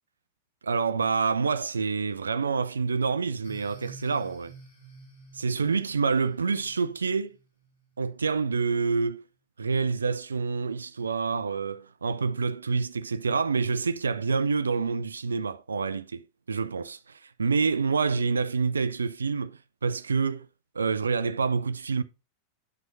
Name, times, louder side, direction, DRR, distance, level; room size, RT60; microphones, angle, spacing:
voice 1, 0.6-4.5 5.3-7.4 8.0-9.3 9.6-20.5 20.7-22.0, right 5 dB, 75° right, 0.4 m, -27 dB
sound 1, 3.4-8.0, right 3 dB, 65° left, 3.3 m, -50 dB
9.9 x 6.1 x 2.6 m
figure-of-eight pair, 90°, 0 cm